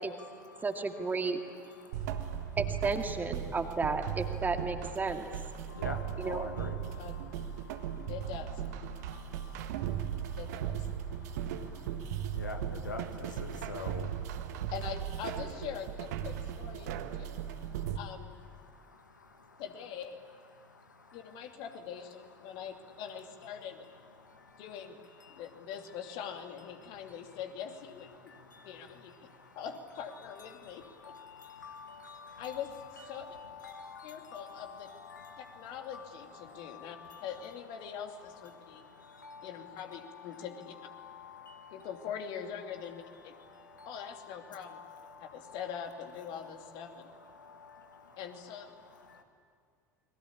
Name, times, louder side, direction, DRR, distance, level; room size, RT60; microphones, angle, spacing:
voice 1, 0.1-2.6 3.4-3.6 4.3-4.5 5.5-8.3 8.8-14.7 16.8-18.0 18.5-19.6 20.5-21.6 22.2-23.0 23.6-25.7 26.0-26.1 26.7-27.4 28.0-29.6 30.1-42.1 42.7-49.2, left 4 dB, 80° left, 5 dB, 2.0 m, -50 dB
voice 2, 0.6-1.4 2.6-5.3 6.2-6.5 17.1-17.2, right 4 dB, 20° right, 5 dB, 2.3 m, -33 dB
sound 1, 1.9-18.0, right 9 dB, 60° right, 1.6 m, -37 dB
voice 3, 8.1-8.6 10.4-10.8 14.7-17.3 17.9-18.3 19.6-20.2 21.1-23.9 24.6-25.0 25.3-28.3 28.6-29.1 29.5-31.2 32.4-32.8 33.1-33.4 34.0-34.9 35.4-38.8 39.4-40.7 41.7-43.3 43.8-44.8 45.2-47.1 48.2-48.7, left 8 dB, 50° left, 4 dB, 2.8 m, -43 dB
29.5 x 22.5 x 8.6 m, 2.2 s
figure-of-eight pair, 70°, 10 cm